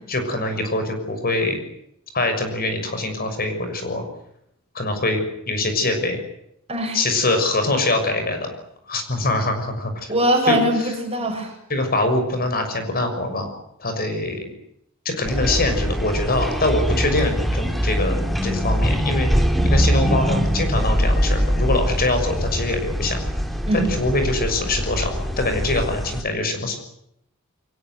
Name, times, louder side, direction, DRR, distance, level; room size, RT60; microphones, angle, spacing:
voice 1, 0.1-1.6 2.1-4.0 4.7-6.2 6.9-8.5 8.9-10.1 10.5-10.6 11.7-13.5 13.8-14.4 15.0-23.2 23.7-26.8, left 2 dB, 45° left, 7 dB, 6.4 m, -23 dB
voice 2, 6.7-7.0 10.1-11.5 23.7-23.9, right 1 dB, 30° right, 3 dB, 7.1 m, -21 dB
sound 1, 15.3-26.2, equal, ahead, 2.4 m, -22 dB
23.5 x 21.0 x 9.4 m, 0.77 s
head